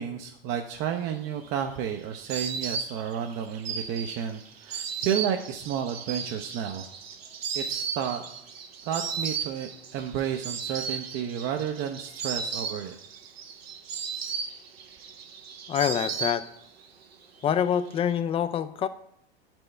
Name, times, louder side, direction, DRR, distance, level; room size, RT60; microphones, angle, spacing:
voice 1, 0.0-6.9 7.5-8.2 8.8-13.0, right 8 dB, 40° right, 4 dB, 0.6 m, -31 dB
Insect, 1.1-16.9 17.1-17.9, right 6 dB, 80° right, 0.9 m, -35 dB
voice 2, 15.7-16.5 17.4-18.9, left 9 dB, 20° left, 13 dB, 0.3 m, -26 dB
11.0 x 4.4 x 3.2 m, 0.76 s
hypercardioid pair, 95°, 30 cm